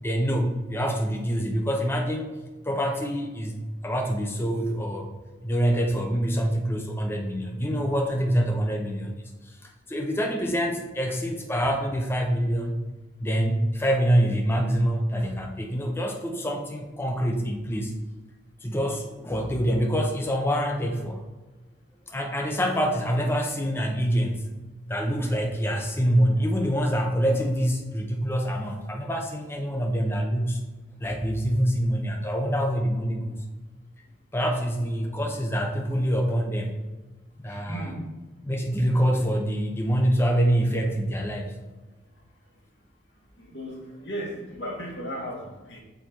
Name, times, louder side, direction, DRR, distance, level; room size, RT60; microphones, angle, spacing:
voice 1, 0.0-2.3 2.6-3.5 3.8-5.1 5.4-9.1 9.9-12.8 13.2-17.9 18.6-21.2 22.1-24.4 24.9-30.6 31.0-33.4 34.3-36.7 37.4-37.9 38.4-41.5, equal, 10° left, 1 dB, 0.7 m, -25 dB
voice 2, 37.5-38.0 38.9-39.2 43.4-45.8, equal, 60° left, -1 dB, 1.6 m, -36 dB
6.8 x 4.5 x 4.4 m, 1.2 s
head